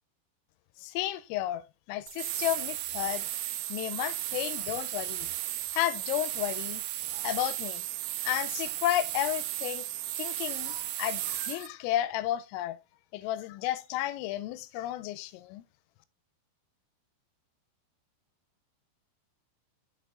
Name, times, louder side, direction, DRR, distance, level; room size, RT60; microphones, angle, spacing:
voice 1, 0.8-3.3 3.7-5.3 5.7-6.8 7.1-7.8 8.2-9.8 10.2-12.8 13.1-15.6, left 14 dB, 90° left, 3.2 m, -32 dB
sound 1, 2.1-11.7, right 15 dB, 90° right, 3.2 m, -35 dB
6.8 x 6.1 x 3.5 m
omnidirectional pair, 5.7 m